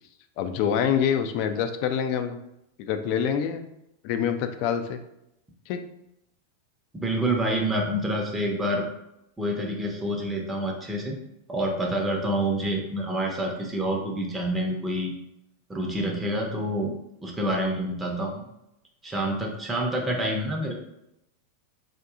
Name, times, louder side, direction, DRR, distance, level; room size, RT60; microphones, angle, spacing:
voice 1, 0.4-2.4 2.8-3.7 4.0-5.0 5.7-5.8, left 8 dB, 45° left, 8 dB, 0.3 m, -26 dB
voice 2, 7.0-8.8 9.4-11.2 11.5-15.1 15.7-16.9 17.2-18.5 19.0-20.7, right 1 dB, 10° right, -1 dB, 0.6 m, -27 dB
3.5 x 2.6 x 2.4 m, 0.82 s
figure-of-eight pair, 90°, 0 cm